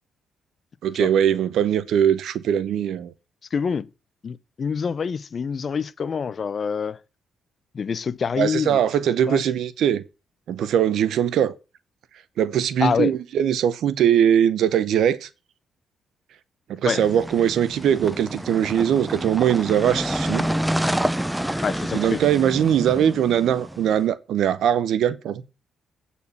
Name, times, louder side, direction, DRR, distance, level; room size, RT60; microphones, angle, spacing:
voice 1, 0.8-3.1 8.4-10.0 10.5-11.5 12.4-15.3 16.7-20.5 21.9-25.4, right 9 dB, 75° right, 0.7 m, -21 dB
voice 2, 3.5-3.9 4.2-7.0 7.7-8.8 9.3-9.4 12.8-13.1 16.8-17.0 21.6-22.2, left 6 dB, 45° left, 0.5 m, -26 dB
sound 1, 17.0-24.0, right 1 dB, 5° right, 0.5 m, -28 dB
8.4 x 4.2 x 7.1 m
cardioid pair, 90°, 0 cm